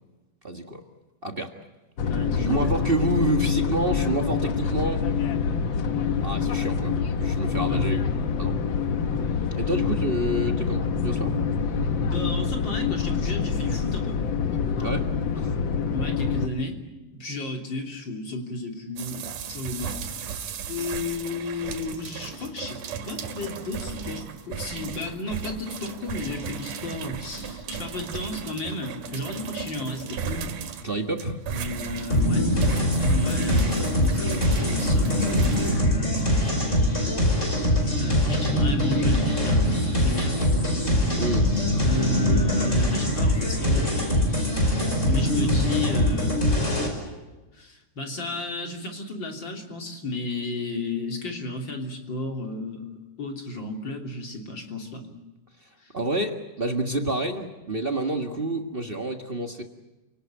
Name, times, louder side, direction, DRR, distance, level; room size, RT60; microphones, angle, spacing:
voice 1, 0.4-0.8 1.2-1.5 2.4-5.1 6.2-7.0 7.2-8.0 8.4-8.6 9.5-11.3 14.8-15.1 15.3-15.5 30.8-31.4 41.2-41.5 55.6-55.7 55.9-59.6, right 1 dB, 35° right, 4 dB, 1.0 m, -28 dB
sound 1, 2.0-16.5, left 6 dB, 55° left, 1.4 m, -26 dB
voice 2, 2.0-2.7 7.6-8.2 12.0-14.2 15.9-16.8 17.1-20.0 20.7-30.5 31.5-32.5 33.1-35.6 36.1-36.7 38.0-40.7 41.8-44.1 45.1-46.9 47.5-52.9 53.2-55.1 55.8-55.9, left 2 dB, 35° left, 2 dB, 3.6 m, -33 dB
sound 2, 19.0-35.8, right 6 dB, 80° right, 3.2 m, -36 dB
sound 3, 32.1-46.9, left 1 dB, 20° left, 5.5 m, -23 dB
29.5 x 18.5 x 9.2 m, 1.1 s
omnidirectional pair, 3.6 m